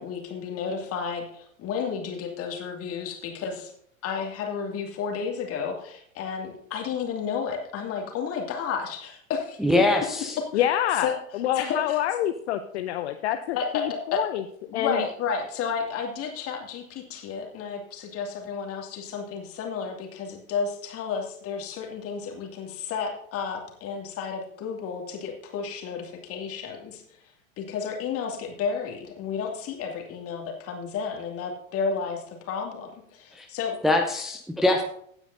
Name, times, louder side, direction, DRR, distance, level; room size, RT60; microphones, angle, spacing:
voice 1, 0.0-3.7 4.0-9.8 11.0-11.1 11.5-12.0 13.5-13.7 14.1-14.2 14.7-27.0 27.6-33.8, left 6 dB, 35° left, 2 dB, 2.4 m, -32 dB
voice 2, 9.6-10.4 33.3-33.5 33.8-34.8, left 1 dB, ahead, 2 dB, 0.7 m, -23 dB
voice 3, 10.5-11.1 11.3-14.4 14.7-15.0, left 11 dB, 50° left, 9 dB, 0.7 m, -27 dB
16.5 x 9.1 x 2.7 m, 0.67 s
figure-of-eight pair, 90°, 42 cm